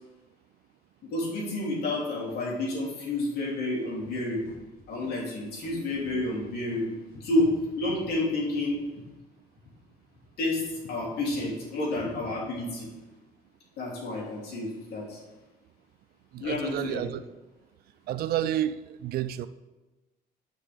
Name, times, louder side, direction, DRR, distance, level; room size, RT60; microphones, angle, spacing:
voice 1, 1.1-4.5 4.9-8.8 10.4-12.9 13.8-15.2 16.4-17.0, left 2 dB, 70° left, -4 dB, 3.1 m, -30 dB
sound 1, 4.4-7.9, left 2 dB, 20° left, 3.0 m, -52 dB
voice 2, 16.3-17.2 18.1-19.5, right 11 dB, 65° right, 15 dB, 0.4 m, -30 dB
12.5 x 5.4 x 3.5 m, 1.1 s
cardioid pair, 110°, 17 cm